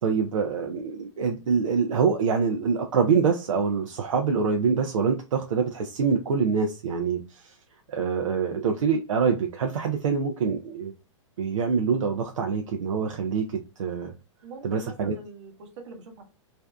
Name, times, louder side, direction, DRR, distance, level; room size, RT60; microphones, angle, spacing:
voice 1, 0.0-7.5 7.9-10.9 11.4-14.1 14.6-15.2, right 5 dB, 85° right, 0.5 m, -25 dB
voice 2, 14.4-16.2, right 4 dB, 65° right, 0.9 m, -43 dB
2.5 x 2.2 x 2.2 m
hypercardioid pair, 130°, 16 cm